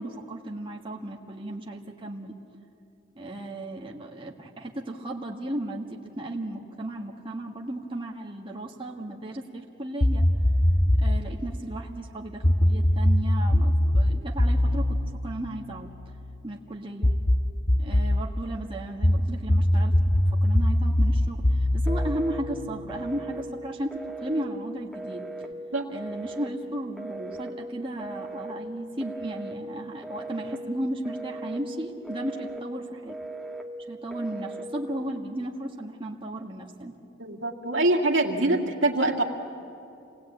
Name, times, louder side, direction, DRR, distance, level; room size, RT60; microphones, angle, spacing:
voice 1, 0.0-2.3 3.2-10.2 11.0-15.9 16.4-17.1 17.8-19.9 20.3-25.2 25.9-33.2 33.9-36.9, right 1 dB, 25° right, -1 dB, 1.6 m, -35 dB
sound 1, 10.0-11.3 12.4-16.1 17.0-18.3 19.0-23.0, left 1 dB, 80° left, 2.1 m, -22 dB
Telephone, 21.9-22.4 22.9-23.5 23.9-24.5 24.9-25.5 26.0-26.5 27.0-27.5 28.0-28.6 29.0-29.6 30.0-30.6 31.1-31.6 32.0-32.6 33.1-33.7 34.1-34.7, right 2 dB, ahead, 1.2 m, -38 dB
voice 2, 37.2-39.2, right 2 dB, 75° right, 1 dB, 2.2 m, -24 dB
28.0 x 19.5 x 8.7 m, 2.8 s
head